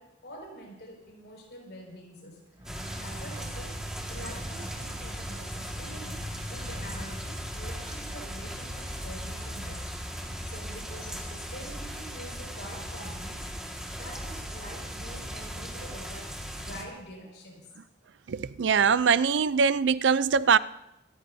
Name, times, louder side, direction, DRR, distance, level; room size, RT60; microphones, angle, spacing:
voice 1, 0.0-2.4 3.0-13.5 14.0-17.7, equal, 65° left, 5.6 m, -46 dB
sound 1, 2.5-8.1, right 1 dB, 25° right, 2.2 m, -48 dB
sound 2, 2.6-16.8, equal, 5° right, 1.8 m, -37 dB
voice 2, 18.3-20.6, right 6 dB, 80° right, 0.5 m, -22 dB
26.0 x 14.0 x 2.7 m
head